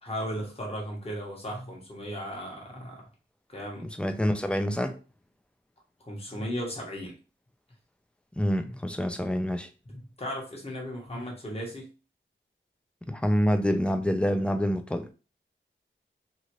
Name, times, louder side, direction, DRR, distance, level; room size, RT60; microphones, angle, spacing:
voice 1, 0.0-3.1 3.5-3.9 6.0-7.1 8.7-8.8 9.9-11.9, equal, 30° left, 1.2 m, -36 dB
voice 2, 4.0-5.0 8.4-9.7 13.1-15.1, equal, 5° left, 0.4 m, -26 dB
2.8 x 2.4 x 3.0 m
wide cardioid pair, 60°, 21 cm